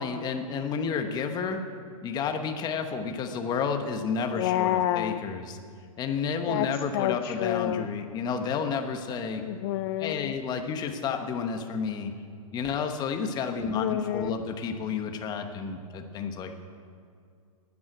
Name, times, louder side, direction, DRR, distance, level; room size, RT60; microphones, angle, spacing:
voice 1, 0.0-1.6 2.0-5.6 6.0-9.4 10.0-12.1 12.5-16.6, left 6 dB, 20° left, 6 dB, 1.1 m, -31 dB
voice 2, 4.3-5.3 6.5-6.7 6.9-7.9 9.4-10.4 13.6-14.4, left 13 dB, 40° left, 12 dB, 0.4 m, -28 dB
10.5 x 9.6 x 8.8 m, 2.3 s
hypercardioid pair, 140°, 19 cm